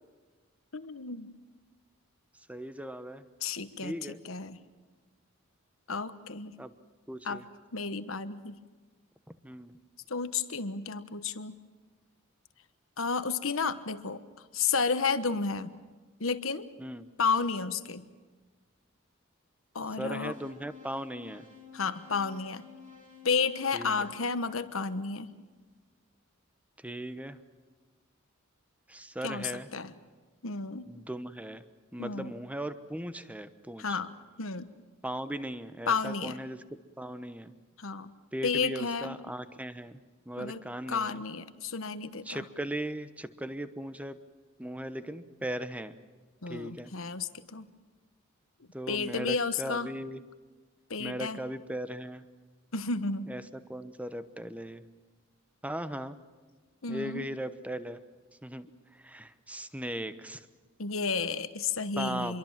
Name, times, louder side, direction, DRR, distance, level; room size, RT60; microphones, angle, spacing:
voice 1, 0.7-1.3 3.4-4.6 5.9-6.6 7.2-7.4 7.7-8.6 10.1-11.5 13.0-15.7 16.2-16.7 17.2-18.1 19.7-20.4 21.7-22.7 23.2-25.3 29.2-29.9 30.4-30.9 32.0-32.3 33.8-34.1 34.4-34.7 35.9-36.4 37.8-38.1 38.4-39.1 40.4-42.4 46.4-47.7 48.9-49.9 50.9-51.4 52.7-53.3 56.8-57.3 60.8-62.4, left 5 dB, 75° left, 12 dB, 1.3 m, -32 dB
voice 2, 2.5-3.2 3.8-4.2 6.6-6.7 7.1-7.4 9.3-9.8 16.8-17.1 20.0-21.5 23.7-24.1 26.8-27.4 28.9-29.7 30.9-31.6 31.9-34.0 35.0-36.6 37.0-37.5 38.3-40.0 40.3-41.2 42.3-44.2 44.6-46.0 46.5-46.9 48.7-50.2 51.0-52.2 53.3-54.8 55.6-56.2 56.9-58.0 58.4-60.5 62.0-62.4, right 1 dB, 5° right, 12 dB, 1.0 m, -38 dB
sound 1, 20.3-25.4, left 6 dB, 40° right, 6.5 m, -52 dB
26.0 x 23.0 x 7.4 m, 1.3 s
head